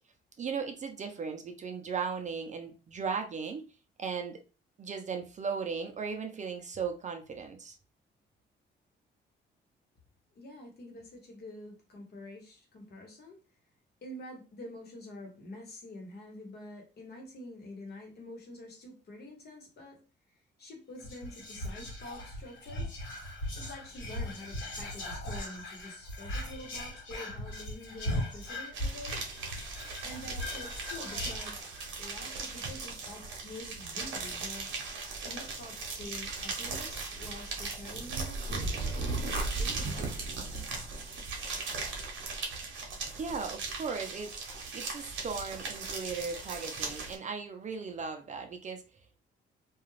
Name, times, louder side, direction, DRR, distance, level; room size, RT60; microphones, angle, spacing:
voice 1, 0.4-3.6 4.0-4.4 4.8-7.8 43.1-44.3 44.7-48.8, right 5 dB, 35° right, 5 dB, 0.5 m, -37 dB
voice 2, 10.3-13.4 14.0-20.0 20.6-23.0 23.5-29.2 30.0-31.6 32.0-39.3 39.6-40.3, left 1 dB, 55° left, 1 dB, 1.1 m, -47 dB
Whispering, 21.0-32.0 32.4-32.5 32.7-33.1, left 1 dB, 75° left, 1.3 m, -39 dB
sound 1, 28.7-47.2, right 3 dB, 75° right, 0.8 m, -37 dB
2.4 x 2.3 x 3.1 m, 0.34 s
cardioid pair, 90°, 20 cm